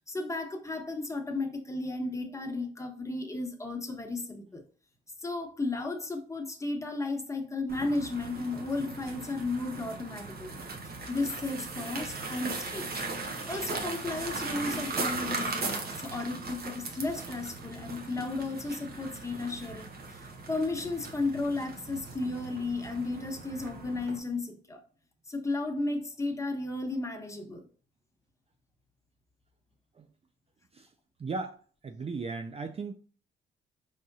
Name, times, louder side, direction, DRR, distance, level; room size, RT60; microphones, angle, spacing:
voice 1, 0.0-4.6 5.2-12.9 13.5-24.8 25.3-27.7, left 2 dB, 15° left, 1.1 m, -34 dB
sound 1, 7.7-24.2, right 3 dB, 50° right, 1.1 m, -38 dB
voice 2, 31.2-31.6 31.8-32.9, right 4 dB, 30° right, 0.5 m, -36 dB
4.9 x 3.5 x 2.7 m
cardioid pair, 90°, 20 cm